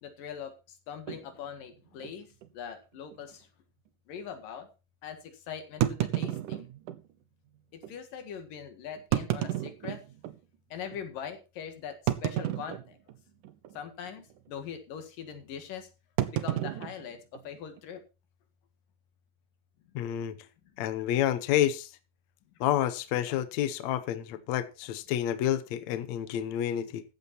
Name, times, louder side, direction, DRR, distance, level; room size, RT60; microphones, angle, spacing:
voice 1, 0.0-2.3 2.5-3.5 4.1-4.7 5.0-6.7 7.7-10.0 10.7-13.0 13.7-15.9 16.3-18.0 23.3-23.4, left 8 dB, 85° left, 3.6 m, -42 dB
sound 1, 1.1-1.3 2.0-2.1 2.4-2.5 3.1-3.2 5.8-7.0 7.8-7.9 9.0-10.4 10.9-11.0 12.1-13.2 13.4-13.8 14.1-14.4 16.2-17.8, right 13 dB, 75° right, 2.5 m, -31 dB
voice 2, 20.0-20.3 20.8-21.9 22.6-27.0, left 11 dB, 70° left, 2.0 m, -29 dB
14.5 x 8.4 x 4.4 m
omnidirectional pair, 3.8 m